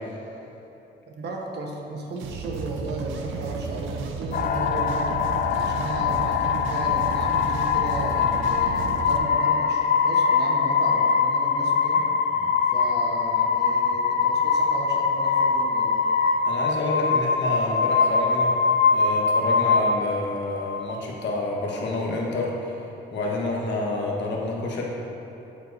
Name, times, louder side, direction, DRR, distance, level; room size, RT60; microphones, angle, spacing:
voice 1, 1.1-5.1 5.5-12.1 12.7-16.0, right 2 dB, 55° right, 0 dB, 1.1 m, -35 dB
sound 1, 2.1-9.2, right 4 dB, 80° right, 0.6 m, -33 dB
sound 2, 4.3-20.9, left 5 dB, 45° left, 0.4 m, -23 dB
voice 2, 16.5-18.5 18.9-22.5 23.1-24.8, left 2 dB, 65° left, -2 dB, 1.3 m, -28 dB
13.0 x 4.5 x 2.7 m, 3.0 s
cardioid pair, 90°, 20 cm